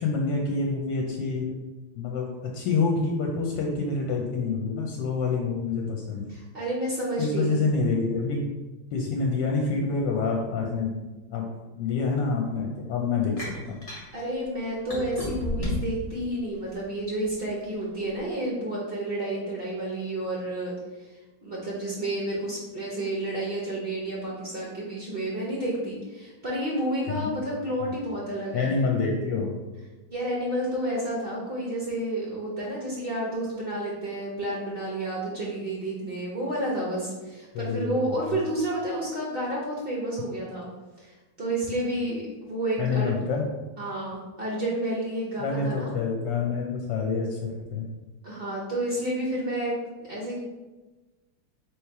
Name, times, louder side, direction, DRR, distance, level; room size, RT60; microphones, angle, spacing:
voice 1, 0.0-1.5 2.0-2.3 2.5-6.3 7.2-8.4 8.9-10.9 11.3-11.5 11.8-13.8 27.2-27.3 28.5-29.5 37.5-37.9 42.8-43.5 45.4-47.8, left 4 dB, 75° left, 0 dB, 1.2 m, -27 dB
voice 2, 6.3-7.6 14.1-21.1 21.4-28.8 30.1-40.7 41.0-43.1 43.8-45.9 48.2-49.7 50.1-50.4, right 1 dB, 80° right, -4 dB, 0.5 m, -30 dB
sound 1, 13.4-14.1 14.9-16.0 16.6-17.5, left 1 dB, 45° left, 0.4 m, -31 dB
3.1 x 3.1 x 4.6 m, 1.2 s
omnidirectional pair, 2.2 m